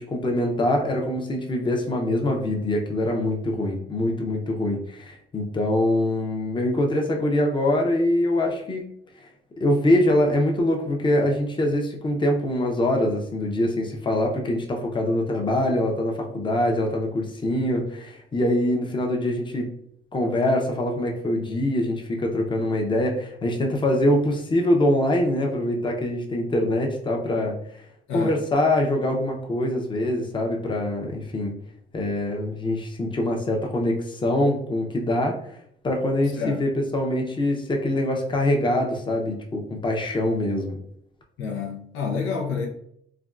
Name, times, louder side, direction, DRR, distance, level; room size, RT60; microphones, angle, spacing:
voice 1, 0.0-8.8 9.6-19.7 20.1-27.5 28.1-31.5 31.9-35.4 35.8-40.8, left 1 dB, 25° left, 0.6 m, -24 dB
voice 2, 41.4-42.7, left 5 dB, 90° left, 0.6 m, -28 dB
3.4 x 2.2 x 2.4 m
cardioid pair, 90°, 20 cm